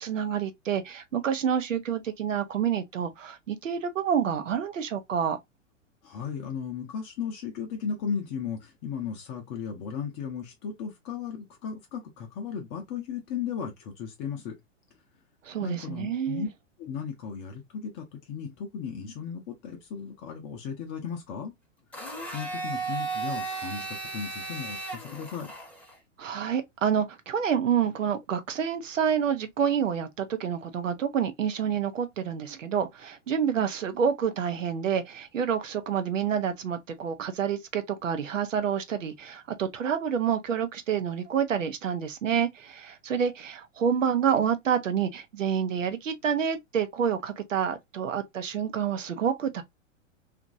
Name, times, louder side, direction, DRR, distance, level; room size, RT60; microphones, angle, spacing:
voice 1, 0.0-5.4 15.5-16.5 26.2-49.6, right 8 dB, 75° right, 0.7 m, -28 dB
voice 2, 6.0-14.5 15.6-16.5 16.8-21.5 22.0-25.5, left 7 dB, 30° left, 0.7 m, -36 dB
Domestic sounds home sounds, 21.9-26.0, right 4 dB, 5° left, 0.8 m, -35 dB
2.9 x 2.5 x 2.5 m
figure-of-eight pair, 100°, 39 cm